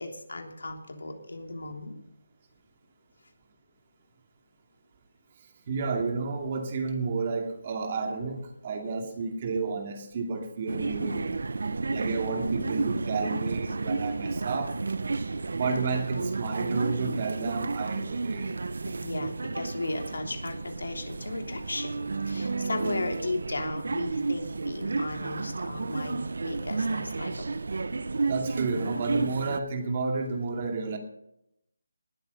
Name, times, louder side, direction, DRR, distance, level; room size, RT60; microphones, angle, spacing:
voice 1, 0.0-2.0 15.2-15.4 18.8-27.6, left 2 dB, 75° left, 4 dB, 3.2 m, -36 dB
voice 2, 5.7-11.4 11.9-14.7 15.5-18.5 28.2-31.0, right 4 dB, 30° right, 4 dB, 2.5 m, -31 dB
sound 1, 10.7-29.6, right 3 dB, 60° right, 0.9 m, -32 dB
19.0 x 8.2 x 5.5 m, 0.78 s
figure-of-eight pair, 165°, 0 cm